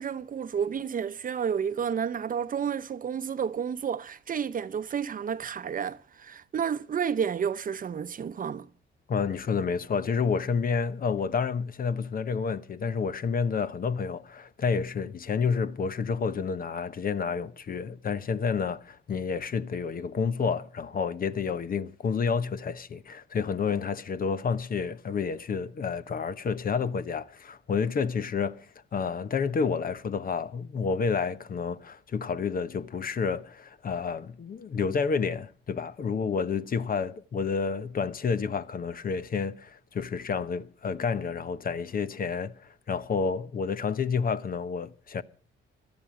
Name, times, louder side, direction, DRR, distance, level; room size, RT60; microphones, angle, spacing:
voice 1, 0.0-8.7, right 7 dB, 45° right, 0.8 m, -31 dB
voice 2, 9.1-45.2, left 5 dB, 45° left, 1.0 m, -29 dB
18.0 x 12.5 x 5.0 m
cardioid pair, 90°, 20 cm